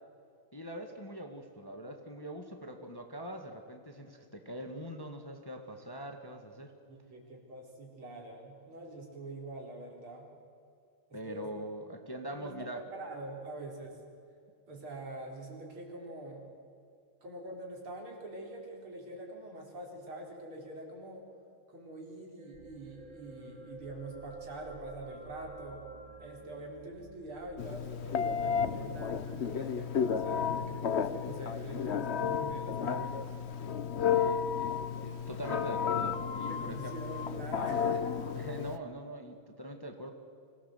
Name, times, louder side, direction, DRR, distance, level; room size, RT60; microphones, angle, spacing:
voice 1, 0.5-6.7 11.1-12.8 34.1-34.7 35.0-37.0 38.3-40.1, right 1 dB, 10° left, 4 dB, 1.5 m, -43 dB
voice 2, 6.9-10.3 11.1-11.5 12.2-12.5 12.9-14.0 14.7-16.4 17.2-21.2 21.7-25.8 26.2-33.3 36.5-38.1, right 2 dB, 80° right, 0 dB, 4.9 m, -45 dB
sound 1, 22.4-26.7, right 2 dB, 25° right, 1.2 m, -50 dB
sound 2, 22.5-29.4, right 4 dB, 50° right, 3.2 m, -57 dB
Telephone, 27.6-38.8, left 7 dB, 55° left, 0.7 m, -32 dB
25.0 x 17.5 x 8.0 m, 2.4 s
omnidirectional pair, 2.3 m